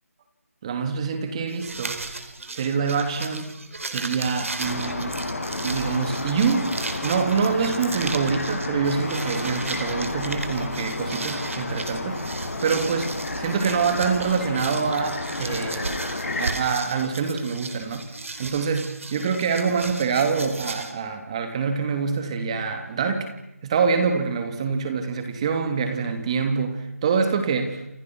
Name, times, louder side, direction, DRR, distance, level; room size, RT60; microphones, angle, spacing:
voice 1, 0.6-2.0 2.5-3.5 3.8-5.2 5.6-12.2 12.6-16.0 16.4-18.1 18.4-23.3 23.6-27.8, right 5 dB, 25° right, 7 dB, 2.9 m, -25 dB
sound 1, 1.5-20.9, right 3 dB, 60° right, 4.5 m, -35 dB
sound 2, 4.6-16.5, left 2 dB, 65° left, 7.9 m, -31 dB
28.5 x 28.0 x 6.3 m, 0.84 s
figure-of-eight pair, 170°, 8 cm